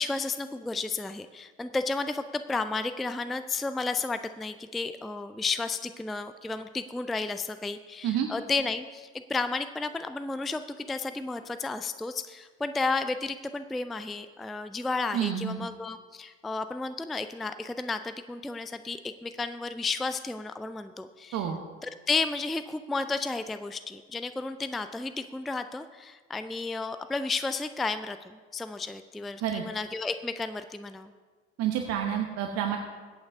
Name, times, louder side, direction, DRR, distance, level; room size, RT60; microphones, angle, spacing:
voice 1, 0.0-21.4 21.8-31.1, left 3 dB, ahead, 10 dB, 0.3 m, -32 dB
voice 2, 15.1-15.7 21.3-21.6 29.4-29.6 31.6-32.8, right 9 dB, 45° right, 4 dB, 1.1 m, -29 dB
22.5 x 8.6 x 2.7 m, 1.5 s
figure-of-eight pair, 65°, 33 cm